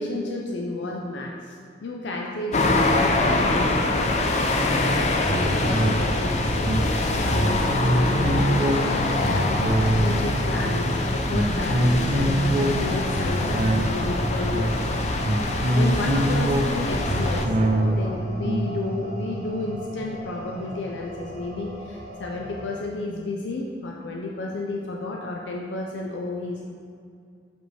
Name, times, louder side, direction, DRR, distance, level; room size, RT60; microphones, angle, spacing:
voice 1, 0.0-4.1 4.4-15.1 15.5-26.6, left 2 dB, 90° left, -1 dB, 0.5 m, -32 dB
Bay Beach and Traffic Ambient Loop, 2.5-17.5, left 2 dB, 40° left, 0.4 m, -24 dB
sound 1, 5.2-21.0 21.4-21.5, right 1 dB, 35° right, 0.5 m, -26 dB
sound 2, 13.7-22.8, equal, 55° right, 0.9 m, -39 dB
6.3 x 5.0 x 3.3 m, 2.3 s
head